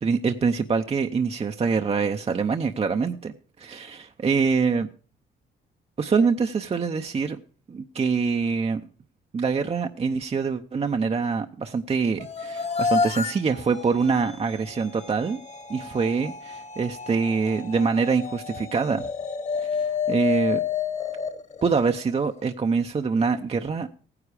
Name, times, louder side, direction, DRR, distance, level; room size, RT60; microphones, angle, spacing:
voice 1, 0.0-4.9 6.0-7.4 7.7-8.8 9.3-15.4 15.7-19.1 19.6-20.6 21.6-23.9, right 5 dB, 30° right, 6 dB, 0.7 m, -25 dB
sound 1, 12.2-22.4, left 5 dB, 35° left, 1.5 m, -30 dB
15.5 x 9.8 x 4.9 m, 0.43 s
cardioid pair, 90°, 20 cm